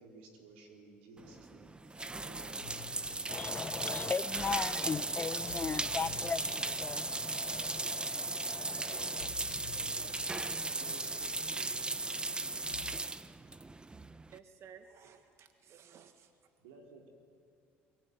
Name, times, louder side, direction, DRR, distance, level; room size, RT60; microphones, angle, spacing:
voice 1, 0.0-2.7 7.5-8.1 8.7-9.4 9.8-11.9 16.6-17.1, right 3 dB, 85° right, 4.2 m, -55 dB
sound 1, 1.2-14.4, right 2 dB, 15° right, 1.0 m, -37 dB
sound 2, 2.6-13.0, left 11 dB, 85° left, 1.3 m, -54 dB
voice 2, 3.3-9.3, left 5 dB, 30° left, 0.7 m, -38 dB
voice 3, 14.2-16.5, right 7 dB, 55° right, 1.5 m, -56 dB
23.0 x 23.0 x 9.6 m
supercardioid pair, 75°, 6 cm